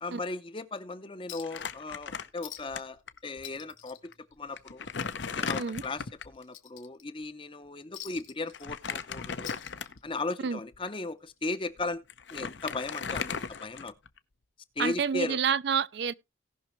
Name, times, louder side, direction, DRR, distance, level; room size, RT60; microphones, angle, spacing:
voice 1, 0.0-4.1 4.4-4.9 5.3-9.6 10.0-12.0 12.3-13.9 14.8-15.4, left 3 dB, 25° left, 0.7 m, -37 dB
Chink clink, 1.3-1.7 2.0-2.1 2.4-2.9 3.2-4.9 5.2-5.4 5.8-7.3 7.9-9.0 9.3-10.3 11.4-11.5, left 11 dB, 80° left, 1.3 m, -46 dB
Crumpling crinkling, 1.4-2.8 3.1-3.2 4.0-4.1 4.6-6.4 8.5-10.1 10.7-10.9 11.8-11.9 12.1-14.2, left 5 dB, 60° left, 0.7 m, -36 dB
voice 2, 14.8-16.1, right 6 dB, 55° right, 0.4 m, -28 dB
18.0 x 6.0 x 3.1 m
head